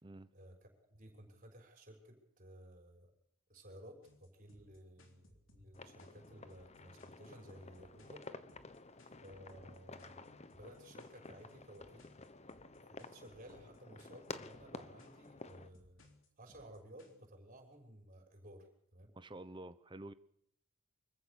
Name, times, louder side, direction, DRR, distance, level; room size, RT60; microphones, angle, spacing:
voice 1, 0.3-3.1 3.5-8.2 9.0-12.1 12.9-16.0 16.4-18.7 18.9-19.1, equal, 40° right, 6.4 m, -56 dB
sound 1, 4.0-17.3, left 2 dB, 60° left, 3.5 m, -65 dB
sound 2, 5.7-15.7, left 3 dB, 30° left, 1.0 m, -52 dB
voice 2, 19.2-20.1, right 1 dB, 20° right, 1.0 m, -49 dB
25.0 x 15.0 x 7.1 m
head